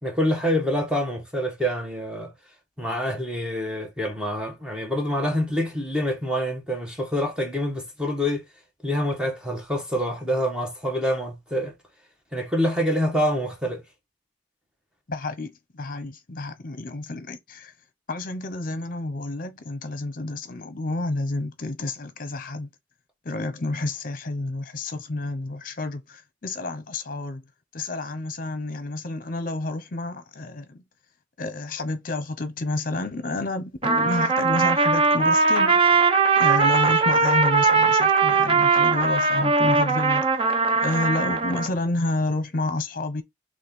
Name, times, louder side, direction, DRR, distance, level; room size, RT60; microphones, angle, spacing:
voice 1, 0.0-2.3 2.8-8.4 8.8-11.7 12.3-13.8, equal, 5° right, 1.1 m, -26 dB
voice 2, 15.1-17.7 18.1-22.7 23.2-27.4 27.7-30.8 31.4-36.0 36.4-40.3 40.8-43.2, left 2 dB, 50° left, 0.8 m, -30 dB
Trumpet, 33.8-41.7, right 4 dB, 30° right, 0.6 m, -20 dB
4.3 x 3.0 x 3.6 m
head